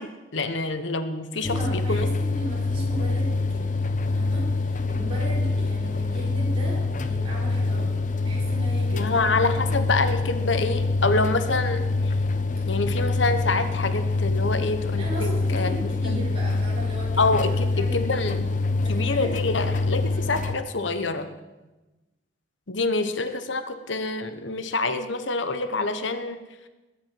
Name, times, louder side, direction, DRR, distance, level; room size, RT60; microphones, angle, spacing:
voice 1, 0.0-2.1 8.9-12.1 12.7-15.8 16.0-16.2 17.2-18.4 18.9-21.3 22.7-26.4, left 3 dB, 75° left, 10 dB, 1.1 m, -26 dB
voice 2, 1.3-3.7 4.1-9.4 15.0-18.4 18.8-19.3 20.1-20.4, right 1 dB, 30° right, -5 dB, 5.7 m, -37 dB
sound 1, 1.4-20.5, left 3 dB, 40° left, 0.9 m, -25 dB
20.5 x 8.6 x 7.8 m, 1.1 s
head